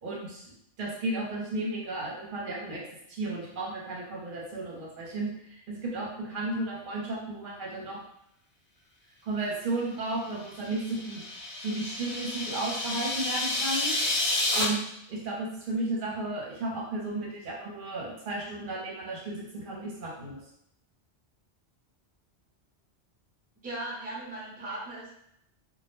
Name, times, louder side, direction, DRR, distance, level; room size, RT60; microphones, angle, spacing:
voice 1, 0.0-2.8 3.1-8.0 9.2-11.3 11.6-14.1 14.5-20.4, right 2 dB, 55° right, -3 dB, 0.8 m, -34 dB
sound 1, 10.5-14.6, left 2 dB, 70° left, 1.1 m, -30 dB
voice 2, 23.6-25.1, right 1 dB, 10° right, -6 dB, 0.5 m, -37 dB
2.2 x 2.1 x 3.0 m, 0.76 s
omnidirectional pair, 1.1 m